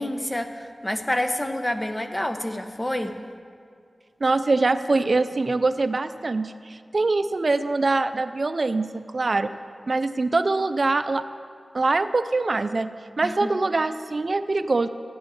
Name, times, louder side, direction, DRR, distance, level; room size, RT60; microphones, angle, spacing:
voice 1, 0.0-3.1 13.2-13.5, left 1 dB, 20° left, 6 dB, 1.1 m, -28 dB
voice 2, 4.2-9.5 9.9-11.2 11.7-12.9 13.2-14.9, right 3 dB, 55° right, 10 dB, 0.5 m, -23 dB
14.0 x 10.5 x 7.0 m, 2.3 s
wide cardioid pair, 70°, 0 cm